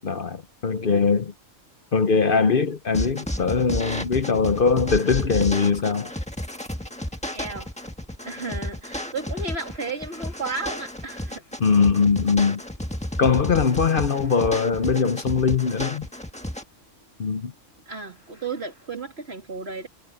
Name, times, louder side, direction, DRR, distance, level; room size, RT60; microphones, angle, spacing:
voice 1, 0.0-1.3 1.9-6.1 11.6-12.6 13.2-16.1 17.2-17.5, left 5 dB, 50° left, 0.9 m, -21 dB
sound 1, 2.9-16.6, equal, 5° left, 1.5 m, -32 dB
voice 2, 7.3-7.7 8.2-11.4 17.9-19.9, right 3 dB, 55° right, 3.2 m, -33 dB
sound 2, 9.3-18.9, left 1 dB, 75° left, 7.7 m, -59 dB
sound 3, 11.2-11.5 12.2-12.7 13.0-13.5 14.1-14.6 15.1-15.7, left 3 dB, 80° right, 7.4 m, -59 dB
omnidirectional pair, 1.3 m